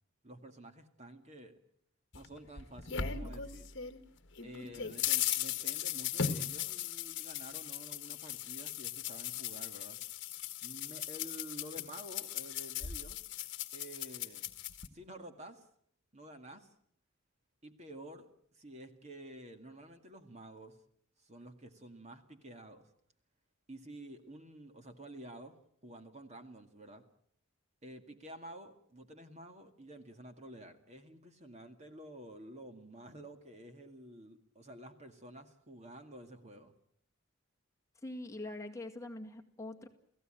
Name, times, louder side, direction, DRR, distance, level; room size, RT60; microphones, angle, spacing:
voice 1, 0.2-1.6 2.1-3.7 4.4-10.0 10.6-13.2 13.7-14.5 14.9-15.7 16.1-16.7 17.6-18.3 18.5-20.8 21.2-22.9 23.7-25.6 25.8-27.0 27.8-36.7, right 1 dB, 30° right, 7 dB, 2.1 m, -50 dB
sound 1, 2.1-4.0 4.4-14.9, left 9 dB, 55° left, 1.5 m, -38 dB
voice 2, 38.0-39.9, left 1 dB, 15° left, 2 dB, 1.9 m, -43 dB
29.5 x 17.0 x 9.0 m, 0.68 s
head